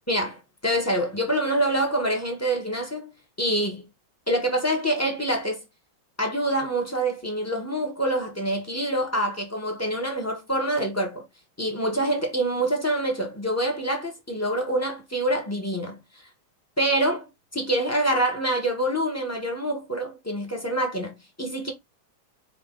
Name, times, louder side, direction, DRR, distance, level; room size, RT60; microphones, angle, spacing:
voice 1, 0.1-3.1 3.4-3.8 4.3-5.6 6.2-11.3 11.6-16.0 16.8-17.3 17.5-21.7, right 1 dB, 15° left, 0.5 m, -26 dB
5.0 x 2.6 x 3.7 m
omnidirectional pair, 2.2 m